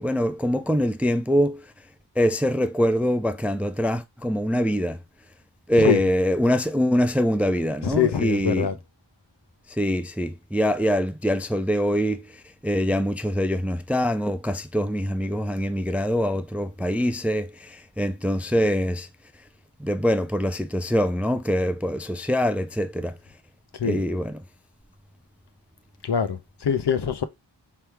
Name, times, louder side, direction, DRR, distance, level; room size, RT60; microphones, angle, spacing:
voice 1, 0.0-1.6 2.2-5.0 5.7-8.7 9.7-12.3 12.6-19.1 19.8-23.2 23.8-24.4, equal, 5° right, 0.3 m, -24 dB
voice 2, 7.8-8.7 23.8-24.0 26.0-26.4 26.6-27.2, left 8 dB, 65° left, 0.7 m, -23 dB
3.5 x 3.1 x 4.5 m
wide cardioid pair, 70°, 44 cm